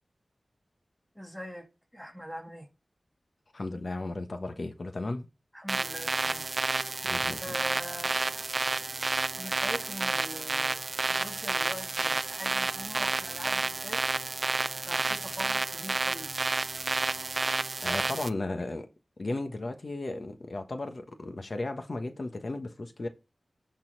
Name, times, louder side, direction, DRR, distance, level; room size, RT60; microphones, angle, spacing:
voice 1, 1.2-1.7 1.9-2.7 5.5-6.5 7.4-8.6 9.3-10.8 11.1-14.0 14.9-16.3, equal, 5° left, 2.2 m, -42 dB
voice 2, 3.5-5.3 7.0-7.6 17.8-18.9 19.2-23.1, left 2 dB, 60° left, 1.2 m, -35 dB
sound 1, 5.7-18.3, right 3 dB, 60° right, 0.4 m, -30 dB
11.0 x 4.1 x 4.0 m
wide cardioid pair, 75°, 0 cm